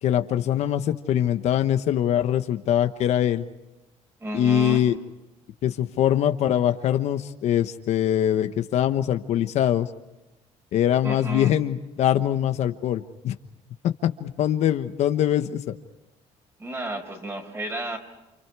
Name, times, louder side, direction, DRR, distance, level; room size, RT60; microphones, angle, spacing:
voice 1, 0.0-3.4 4.3-4.9 5.6-9.9 10.7-13.3 13.8-15.8, left 10 dB, 60° left, 8 dB, 1.2 m, -23 dB
voice 2, 4.2-4.8 11.0-11.5 16.6-18.0, right 1 dB, 20° right, 6 dB, 5.0 m, -32 dB
30.0 x 29.0 x 4.8 m, 0.98 s
cardioid pair, 150°, 13 cm